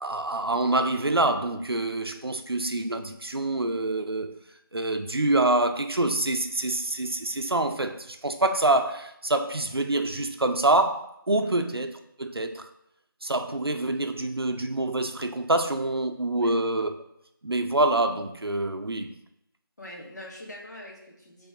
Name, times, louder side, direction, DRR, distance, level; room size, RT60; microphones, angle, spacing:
voice 1, 0.0-4.4 4.7-11.9 12.2-12.7 13.2-16.9 17.4-19.1, right 2 dB, 80° right, 0.7 m, -26 dB
voice 2, 19.8-21.5, left 1 dB, 45° left, 1.7 m, -43 dB
7.9 x 3.4 x 3.6 m
figure-of-eight pair, 170°, 13 cm